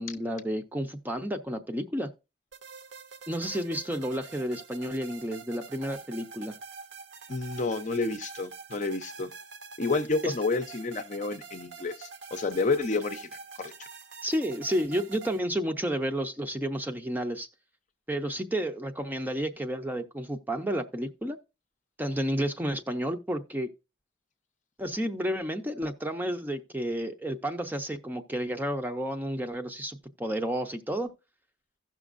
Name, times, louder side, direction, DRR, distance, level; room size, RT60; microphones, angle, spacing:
voice 1, 0.0-2.1 3.3-6.5 10.2-10.3 14.2-17.5 18.1-21.4 22.0-23.7 24.8-31.1, equal, 10° right, 0.6 m, -31 dB
sound 1, 2.5-15.4, right 5 dB, 70° right, 0.8 m, -46 dB
voice 2, 7.3-9.3 9.8-13.3 13.6-13.7, left 3 dB, 40° left, 0.6 m, -30 dB
16.0 x 6.1 x 2.5 m
head